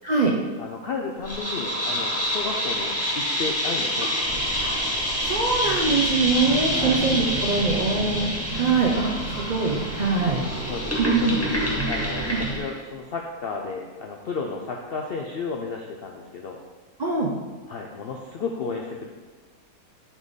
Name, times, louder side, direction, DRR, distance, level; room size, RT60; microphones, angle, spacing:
voice 1, 0.6-4.3 6.7-7.0 10.6-16.6 17.7-19.1, left 4 dB, 70° left, 1 dB, 0.5 m, -33 dB
sound 1, 1.2-12.7, equal, 10° left, 1.3 m, -27 dB
sound 2, 4.2-12.6, right 3 dB, 90° right, 1.8 m, -35 dB
voice 2, 4.6-4.9 5.2-10.4 11.0-11.3 12.2-12.4 17.0-17.3, right 4 dB, 60° right, -2 dB, 0.4 m, -23 dB
sound 3, 6.2-11.2 11.5-11.6, right 1 dB, 40° right, 1.8 m, -38 dB
8.3 x 3.6 x 4.0 m, 1.3 s
omnidirectional pair, 1.6 m